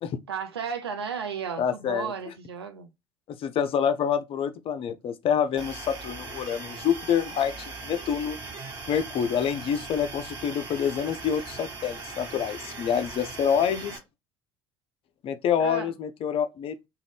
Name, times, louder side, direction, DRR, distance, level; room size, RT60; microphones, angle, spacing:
voice 1, 0.3-2.9 15.6-15.9, right 6 dB, 90° right, 0.5 m, -34 dB
voice 2, 1.6-2.1 3.3-8.4 8.9-14.0 15.2-16.8, left 8 dB, 45° left, 0.5 m, -27 dB
sound 1, 5.6-14.0, right 3 dB, 35° right, 1.4 m, -40 dB
2.5 x 2.4 x 3.4 m
hypercardioid pair, 65°, 13 cm